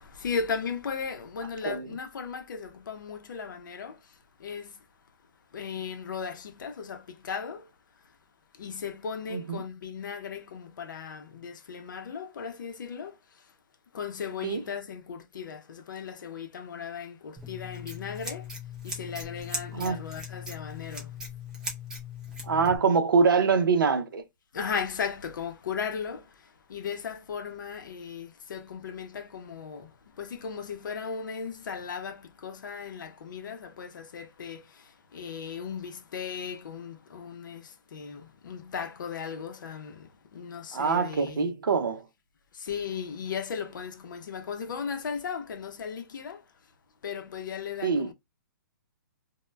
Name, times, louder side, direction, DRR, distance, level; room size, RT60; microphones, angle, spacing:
voice 1, 0.0-4.9 5.5-7.7 8.5-13.5 13.9-18.5 18.8-21.2 24.5-41.5 42.5-46.4 47.0-48.1, left 6 dB, 70° left, 0.5 m, -37 dB
voice 2, 9.3-9.6 14.4-14.6 19.7-20.0 22.4-24.2 40.7-42.0 47.8-48.1, right 5 dB, 80° right, 0.6 m, -24 dB
Scissors, 17.4-22.8, left 3 dB, 5° right, 0.4 m, -39 dB
2.1 x 2.0 x 3.2 m
hypercardioid pair, 155°, 11 cm